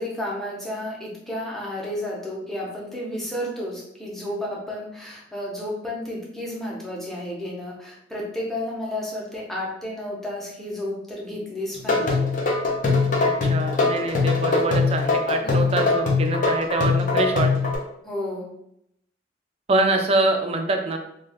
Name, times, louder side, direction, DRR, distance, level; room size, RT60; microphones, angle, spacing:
voice 1, 0.0-12.3 15.4-15.8 18.0-18.5, left 1 dB, ahead, -4 dB, 0.7 m, -32 dB
sound 1, 11.8-17.8, left 4 dB, 45° left, 0.6 m, -21 dB
voice 2, 13.2-17.7 19.7-21.0, right 2 dB, 35° right, 4 dB, 0.4 m, -24 dB
2.5 x 2.3 x 3.4 m, 0.75 s
head